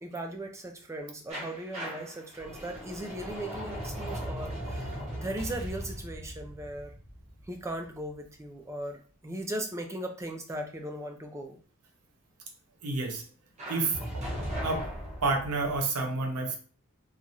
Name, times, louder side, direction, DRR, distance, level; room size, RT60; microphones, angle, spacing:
voice 1, 0.0-6.9 7.5-11.6, right 1 dB, 15° right, 4 dB, 0.3 m, -38 dB
sound 1, 1.3-8.1 13.6-15.8, equal, 30° right, 0.9 m, -38 dB
voice 2, 12.8-13.2 13.7-14.2 14.6-14.9 15.2-16.6, right 3 dB, 85° right, 4 dB, 0.6 m, -29 dB
3.0 x 2.3 x 2.6 m, 0.40 s
head